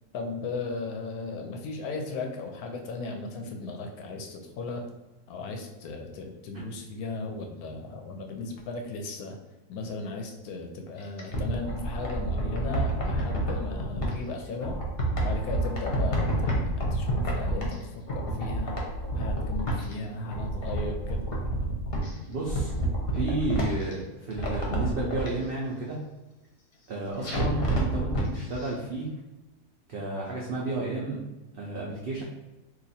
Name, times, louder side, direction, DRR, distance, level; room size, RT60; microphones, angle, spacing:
voice 1, 0.1-4.8 5.3-9.4 9.7-14.8 15.2-18.8 19.1-21.3, left 3 dB, 75° left, 3 dB, 1.0 m, -36 dB
sound 1, 11.0-14.1 14.6-17.8 18.1-19.9 20.2-22.1 22.4-23.9 24.3-25.3 27.2-28.3 28.6-28.7, right 1 dB, 45° left, 0.8 m, -29 dB
voice 2, 22.3-22.7 23.1-26.0 26.9-29.1 29.9-31.2 31.5-32.2, right 2 dB, 80° right, -4 dB, 0.5 m, -32 dB
2.9 x 2.5 x 4.1 m, 1.1 s
omnidirectional pair, 1.7 m